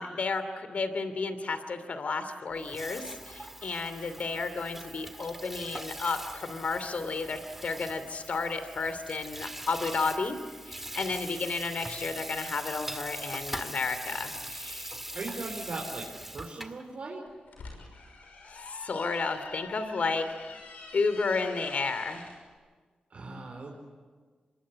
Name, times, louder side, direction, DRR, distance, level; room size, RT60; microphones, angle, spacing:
voice 1, 0.0-10.4 10.7-15.0 18.5-20.6 20.9-22.2, left 4 dB, 60° left, 10 dB, 2.8 m, -32 dB
Water tap faucet / Sink (filling or washing), 2.5-16.8, right 1 dB, 10° right, 1.8 m, -42 dB
voice 2, 15.1-16.0 16.3-17.2 23.1-23.8, right 3 dB, 60° right, -1 dB, 4.5 m, -38 dB
sound 1, 17.3-22.4, left 3 dB, 85° left, 6.0 m, -46 dB
25.5 x 22.5 x 9.8 m, 1.5 s
cardioid pair, 70°, 3 cm